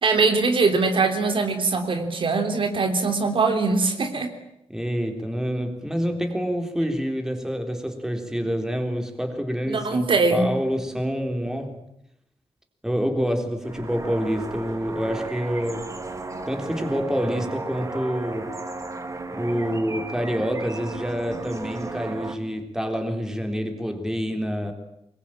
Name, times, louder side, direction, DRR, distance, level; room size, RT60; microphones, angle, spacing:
voice 1, 0.0-4.3 9.7-10.5, right 3 dB, 55° right, 6 dB, 3.3 m, -22 dB
voice 2, 4.7-11.8 12.8-15.9 16.5-18.5 19.3-24.7, equal, 5° right, 5 dB, 3.9 m, -27 dB
sound 1, 13.6-22.4, right 2 dB, 30° right, 2.8 m, -34 dB
24.5 x 22.0 x 8.9 m, 0.80 s
wide cardioid pair, 115°, 10 cm